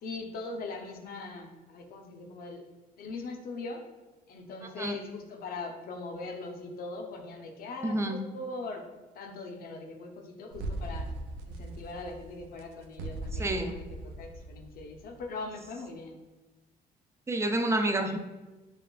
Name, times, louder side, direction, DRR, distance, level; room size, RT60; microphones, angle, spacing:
voice 1, 0.0-2.6 3.0-3.9 4.3-8.9 9.1-11.1 11.5-16.2, left 3 dB, 60° left, 3 dB, 0.6 m, -41 dB
voice 2, 7.8-8.2 13.4-13.7 17.3-18.2, right 1 dB, 15° right, 6 dB, 0.4 m, -28 dB
sound 1, 10.5-15.3, right 2 dB, 90° right, 0.4 m, -39 dB
6.7 x 2.4 x 2.3 m, 1.1 s
cardioid pair, 110°, 17 cm